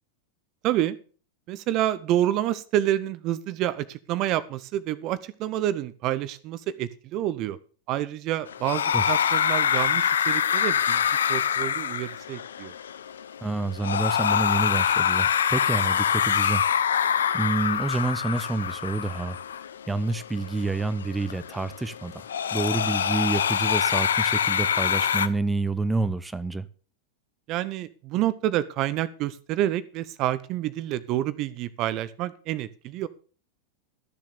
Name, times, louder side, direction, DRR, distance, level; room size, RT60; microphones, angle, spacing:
voice 1, 0.6-1.0 1.5-7.6 7.9-11.0 11.3-12.7 27.5-33.1, right 13 dB, 40° right, 0.7 m, -28 dB
sound 1, 8.5-25.3, left 8 dB, 65° left, 0.8 m, -25 dB
voice 2, 13.4-19.4 19.9-22.3 22.5-26.7, right 3 dB, 10° right, 0.8 m, -28 dB
13.5 x 7.4 x 6.6 m
figure-of-eight pair, 90°, 0 cm